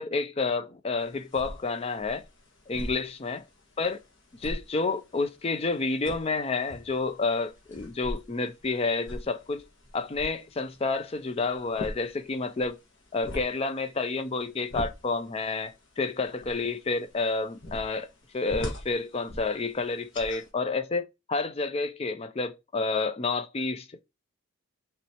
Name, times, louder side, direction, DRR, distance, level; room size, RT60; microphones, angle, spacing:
voice 1, 0.0-2.3 2.7-3.4 3.8-4.0 4.4-9.6 9.9-12.8 13.1-18.1 18.3-24.0, left 3 dB, 30° left, 0.4 m, -29 dB
sound 1, 1.0-20.5, left 1 dB, 55° left, 1.6 m, -43 dB
5.9 x 3.1 x 2.9 m
head